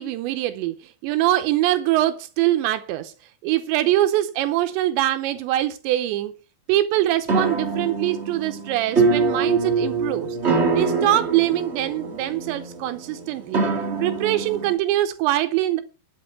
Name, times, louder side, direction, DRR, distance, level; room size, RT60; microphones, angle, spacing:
voice 1, 0.0-3.1 3.4-6.3 6.7-10.4 10.7-13.6 14.0-15.8, right 14 dB, 80° right, 3.0 m, -23 dB
sound 1, 7.3-14.7, right 4 dB, 60° right, 0.6 m, -24 dB
11.0 x 8.1 x 5.7 m
omnidirectional pair, 5.1 m